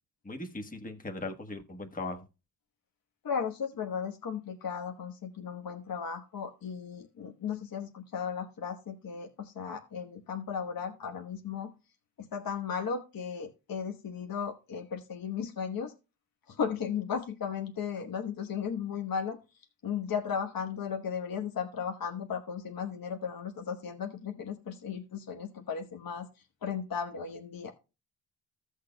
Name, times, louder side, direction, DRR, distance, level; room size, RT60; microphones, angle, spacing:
voice 1, 0.2-2.2, left 2 dB, 20° left, 4 dB, 1.2 m, -38 dB
voice 2, 3.2-11.7 12.2-15.9 16.5-27.7, left 7 dB, 55° left, 4 dB, 1.1 m, -36 dB
15.5 x 6.5 x 2.2 m, 0.29 s
cardioid pair, 90°, 40 cm